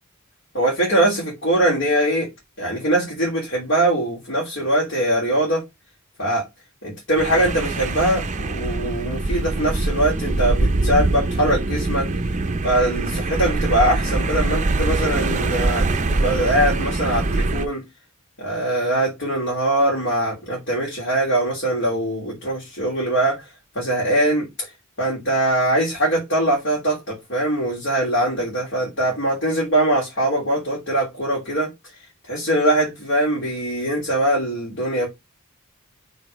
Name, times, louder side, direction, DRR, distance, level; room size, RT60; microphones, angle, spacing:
voice 1, 0.5-2.3 2.6-5.6 6.2-6.4 6.8-12.1 12.6-17.8 18.4-23.4 23.7-24.7 25.0-31.7 32.3-35.1, right 1 dB, 55° left, 2.8 m, -22 dB
sound 1, 7.2-17.7, right 2 dB, 35° right, 0.6 m, -23 dB
5.3 x 4.1 x 5.1 m
head